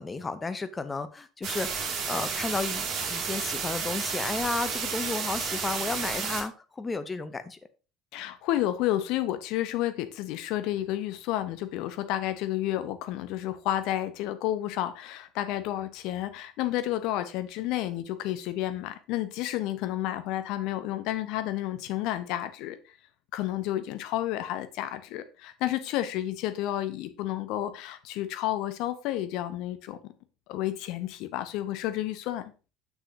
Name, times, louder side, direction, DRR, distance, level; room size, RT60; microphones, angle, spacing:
voice 1, 0.0-7.6, left 3 dB, 20° left, 0.8 m, -33 dB
sound 1, 1.4-6.4, right 5 dB, 45° right, 2.4 m, -31 dB
voice 2, 8.1-22.8 23.3-30.0 30.5-32.4, left 13 dB, 60° left, 0.8 m, -31 dB
7.3 x 6.7 x 2.8 m
figure-of-eight pair, 65°, 0 cm